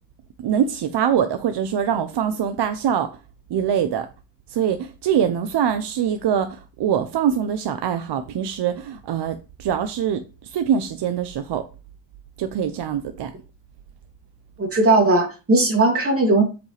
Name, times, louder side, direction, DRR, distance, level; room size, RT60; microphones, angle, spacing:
voice 1, 0.4-3.1 3.5-4.1 4.5-11.6 12.4-13.3, right 8 dB, 65° right, 0.8 m, -23 dB
voice 2, 14.6-16.4, right 2 dB, 30° right, 2.8 m, -18 dB
7.8 x 5.1 x 3.4 m
cardioid pair, 120°, 44 cm